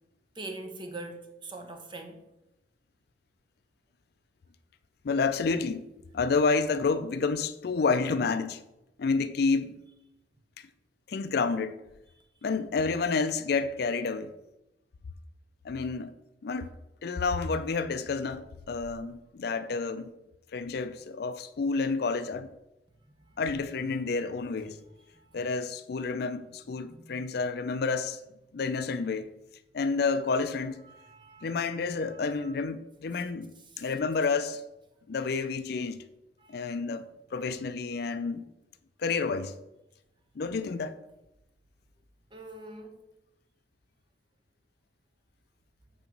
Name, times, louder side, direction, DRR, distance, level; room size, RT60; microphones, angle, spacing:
voice 1, 0.3-2.2 23.2-23.4 25.1-25.4 26.8-27.4 30.9-31.7 32.0-32.5 33.7-33.8 36.4-36.7 42.3-43.0, right 2 dB, 25° right, 0.7 m, -44 dB
voice 2, 5.0-5.9 6.1-8.6 9.0-9.8 11.1-11.8 12.4-14.3 15.6-16.1 16.4-20.1 20.5-22.5 23.4-24.8 25.3-28.2 28.5-29.3 29.7-30.9 31.4-34.6 35.1-36.0 36.5-38.5 39.0-39.5 40.4-41.0, left 4 dB, 55° left, 0.4 m, -29 dB
8.5 x 2.9 x 5.2 m
head